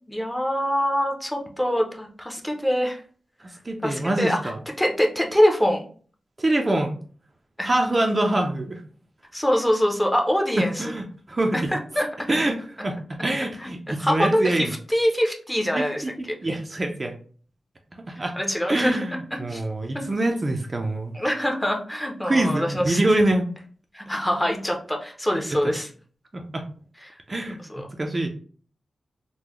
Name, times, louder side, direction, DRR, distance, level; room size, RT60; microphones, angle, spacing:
voice 1, 0.0-3.0 3.8-4.5 4.8-5.8 7.6-7.7 9.3-10.9 11.5-12.3 13.6-16.0 18.4-19.0 19.3-19.6 19.9-20.1 21.1-23.0 23.9-25.9 27.0-27.1 27.7-27.9, equal, 10° left, 2 dB, 0.6 m, -24 dB
voice 2, 3.4-4.6 6.4-7.0 7.6-8.8 10.6-11.7 12.3-14.7 15.8-17.1 18.1-18.4 18.7-21.2 22.2-23.4 25.3-25.7 26.3-26.6 27.3-27.6 28.0-28.3, right 1 dB, 30° right, 3 dB, 0.4 m, -25 dB
3.7 x 2.1 x 3.0 m, 0.44 s
wide cardioid pair, 95°, 0 cm